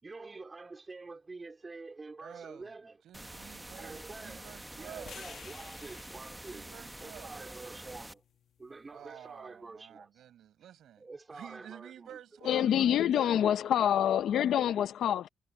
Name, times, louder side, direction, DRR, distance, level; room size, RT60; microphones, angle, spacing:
voice 1, 0.0-3.0 3.7-6.7 7.0-8.2 8.6-10.2 11.0-12.2 12.5-12.9, right 3 dB, 25° right, 3.6 m, -47 dB
voice 2, 2.2-2.7 3.0-5.2 6.5-7.3 8.9-13.4, right 11 dB, 75° right, 5.9 m, -50 dB
sound 1, 3.1-8.1, right 1 dB, 10° right, 0.9 m, -47 dB
sound 2, 5.0-9.2, left 7 dB, 55° left, 1.3 m, -54 dB
voice 3, 12.4-15.3, left 10 dB, 75° left, 0.7 m, -26 dB
cardioid pair, 120°, 0 cm